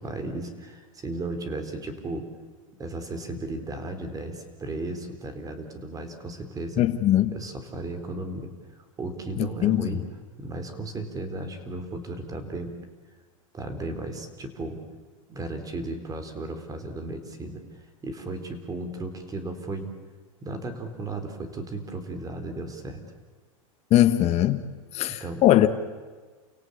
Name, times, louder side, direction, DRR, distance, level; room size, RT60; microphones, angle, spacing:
voice 1, 0.0-2.3 2.8-6.8 7.3-10.0 10.4-12.7 13.5-14.8 15.3-19.9 20.4-23.0 25.1-25.4, right 2 dB, 20° right, 7 dB, 4.0 m, -35 dB
voice 2, 6.8-7.3 9.6-9.9 23.9-24.6 24.9-25.7, left 13 dB, 40° left, 8 dB, 1.4 m, -20 dB
29.5 x 17.5 x 8.7 m, 1.4 s
hypercardioid pair, 115°, 18 cm